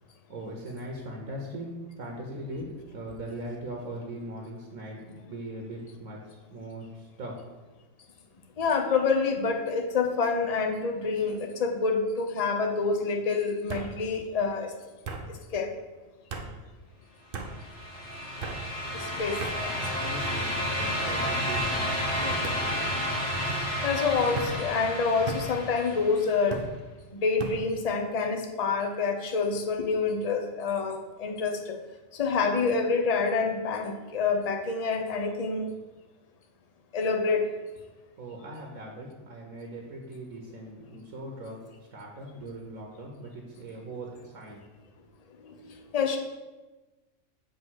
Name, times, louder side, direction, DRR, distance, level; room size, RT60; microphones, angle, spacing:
voice 1, 0.0-7.4 19.8-22.8 38.2-44.6, right 1 dB, 75° right, 0 dB, 1.4 m, -40 dB
voice 2, 8.6-14.7 15.5-15.7 18.9-19.7 23.5-23.6 23.8-26.6 27.1-31.8 32.1-35.7 36.9-37.5 45.4-45.6 45.9-46.2, left 4 dB, 35° left, 3 dB, 0.6 m, -27 dB
sound 1, 10.2-10.6 11.0-11.6 12.6-12.7 13.7-13.9 15.0-15.2 16.3-16.5 17.3-17.5 18.4-18.6 19.4-19.6 20.3-20.8 21.5-21.7 22.4-22.6 23.5-23.7 24.3-24.6 25.3-25.5 26.5-26.7 27.4-27.6, right 4 dB, 50° right, 0.8 m, -37 dB
sound 2, 17.5-26.4, equal, 55° left, 2.0 m, -31 dB
7.8 x 3.3 x 6.2 m, 1.2 s
omnidirectional pair, 1.5 m